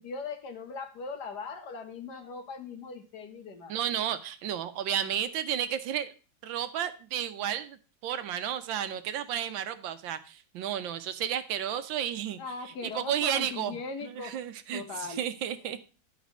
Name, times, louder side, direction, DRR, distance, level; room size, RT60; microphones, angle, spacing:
voice 1, 0.0-3.7 12.4-14.4 14.7-15.3, left 4 dB, 60° left, 6 dB, 1.6 m, -39 dB
voice 2, 3.7-6.1 6.4-12.4 12.8-15.8, right 10 dB, 80° right, 11 dB, 1.5 m, -32 dB
11.0 x 4.2 x 6.1 m, 0.35 s
omnidirectional pair, 2.1 m